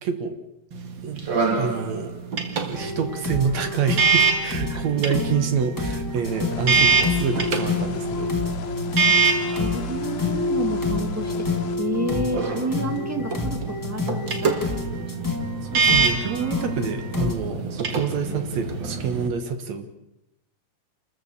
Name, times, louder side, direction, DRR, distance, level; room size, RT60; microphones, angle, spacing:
voice 1, 0.0-0.4 1.0-2.1 2.7-8.4 15.7-19.9, right 6 dB, 65° right, 8 dB, 2.5 m, -27 dB
sound 1, 0.7-19.3, right 4 dB, 45° right, 2.0 m, -26 dB
sound 2, 2.7-17.4, left 3 dB, 15° left, 0.8 m, -29 dB
sound 3, 6.3-11.8, left 8 dB, 85° left, 2.5 m, -36 dB
voice 2, 9.5-11.5 11.8-15.5 18.2-18.4, right 1 dB, 20° right, 4 dB, 0.4 m, -31 dB
28.0 x 14.0 x 6.8 m, 0.86 s
omnidirectional pair, 3.6 m